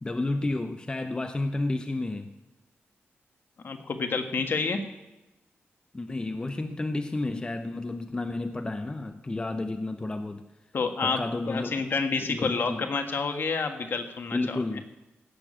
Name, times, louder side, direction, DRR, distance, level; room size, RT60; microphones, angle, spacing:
voice 1, 0.0-2.3 5.9-10.4 11.0-11.8 12.2-12.9 14.3-14.9, left 2 dB, 20° left, 7 dB, 0.7 m, -31 dB
voice 2, 3.6-4.8 10.7-14.6, left 4 dB, 55° left, 5 dB, 1.5 m, -29 dB
16.5 x 6.7 x 8.7 m, 1.0 s
wide cardioid pair, 130°, 4 cm